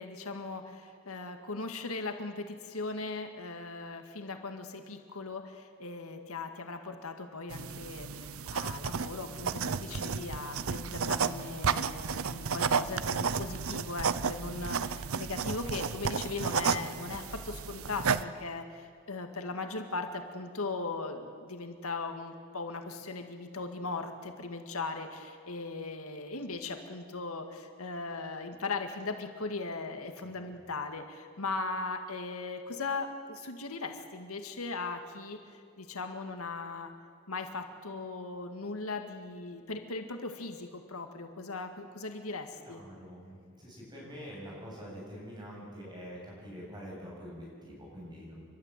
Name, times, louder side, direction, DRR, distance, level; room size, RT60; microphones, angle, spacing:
voice 1, 0.0-36.9 37.3-42.8, left 3 dB, 90° left, 6 dB, 2.0 m, -38 dB
sound 1, 7.5-18.2, right 6 dB, 80° right, 0.7 m, -32 dB
voice 2, 30.2-30.5 42.6-48.3, equal, 20° right, -4 dB, 7.8 m, -45 dB
30.0 x 12.5 x 9.2 m, 2.3 s
head